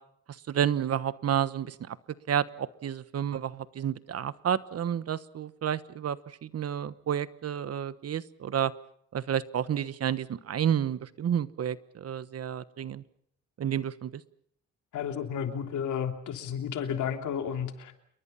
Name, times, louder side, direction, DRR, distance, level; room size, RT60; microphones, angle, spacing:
voice 1, 0.5-2.0 2.3-8.7 9.1-13.0 13.6-14.2, right 9 dB, 55° right, 15 dB, 1.2 m, -30 dB
voice 2, 14.9-17.9, left 8 dB, 75° left, 5 dB, 3.3 m, -32 dB
28.5 x 23.0 x 5.7 m, 0.69 s
cardioid pair, 90°, 30 cm